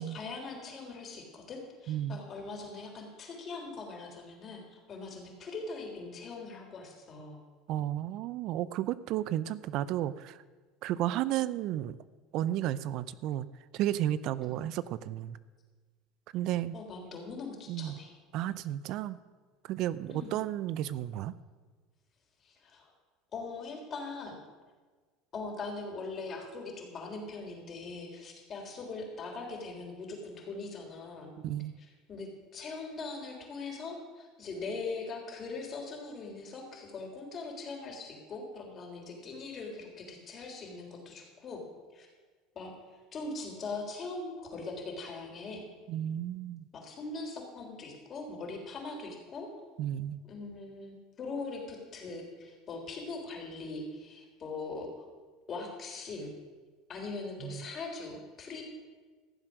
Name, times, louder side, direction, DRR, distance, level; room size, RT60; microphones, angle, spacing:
voice 1, 0.0-7.4 14.5-14.6 16.7-18.1 20.1-20.4 22.4-22.9 23.3-24.4 25.3-31.3 31.8-41.6 41.9-42.1 42.5-42.7 43.1-45.7 46.7-49.5 50.2-55.1 55.5-56.3 56.9-58.6, left 3 dB, 40° left, 1 dB, 3.5 m, -41 dB
voice 2, 1.9-2.2 7.7-10.4 10.8-12.0 12.3-13.5 13.7-15.4 16.3-16.7 17.7-17.9 18.3-19.2 19.7-21.3 31.4-31.7 45.9-46.7 49.8-50.2 57.4-57.7, right 12 dB, 60° right, 17 dB, 0.5 m, -33 dB
14.5 x 7.5 x 6.4 m, 1.4 s
supercardioid pair, 100°, 0 cm